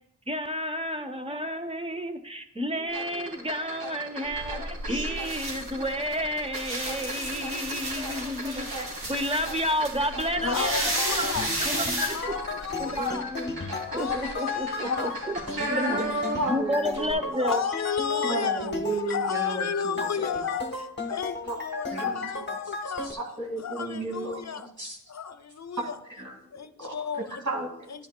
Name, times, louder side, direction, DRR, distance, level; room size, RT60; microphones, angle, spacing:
voice 1, 0.3-10.9 11.2-11.3 11.6-12.3 12.8-13.5 13.9-14.9 15.3-15.4 15.9-16.0 16.5-17.6 18.1-18.4, equal, 15° right, 0.8 m, -31 dB
sound 1, 2.9-16.7 16.9-17.1, right 1 dB, 65° right, 2.8 m, -36 dB
sound 2, 4.3-13.1, right 1 dB, 80° right, 2.8 m, -33 dB
voice 2, 10.4-11.6 12.1-13.3 13.8-15.1 15.6-16.4 17.4-23.2 23.6-24.7 25.1-26.0 26.5-27.4 27.9-28.1, left 7 dB, 45° left, 0.7 m, -33 dB
sound 3, 10.4-23.1, left 3 dB, 25° left, 1.1 m, -35 dB
voice 3, 15.7-17.4 18.2-20.3 21.5-21.6 21.9-22.3 23.0-24.5 24.8-25.0 25.8-28.1, right 2 dB, 45° right, 2.3 m, -34 dB
10.5 x 10.5 x 2.2 m
cardioid pair, 70°, 39 cm